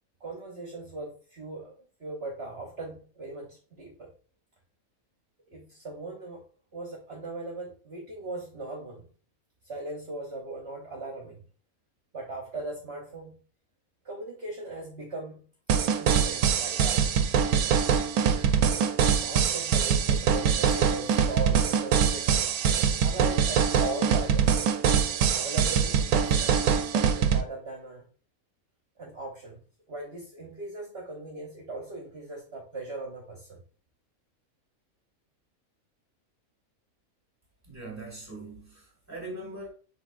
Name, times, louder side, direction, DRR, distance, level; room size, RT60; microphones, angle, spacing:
voice 1, 0.2-4.1 5.5-6.4 6.7-9.1 9.6-11.4 12.1-13.3 14.0-15.4 16.0-17.1 19.2-22.5 23.0-24.6 25.3-28.0 29.0-29.6 29.9-33.6, right 2 dB, 50° right, 1.2 m, -39 dB
sound 1, 15.7-27.4, right 7 dB, 90° right, 1.1 m, -24 dB
voice 2, 37.7-39.7, right 2 dB, 10° right, 2.0 m, -41 dB
5.8 x 3.6 x 2.5 m
omnidirectional pair, 1.5 m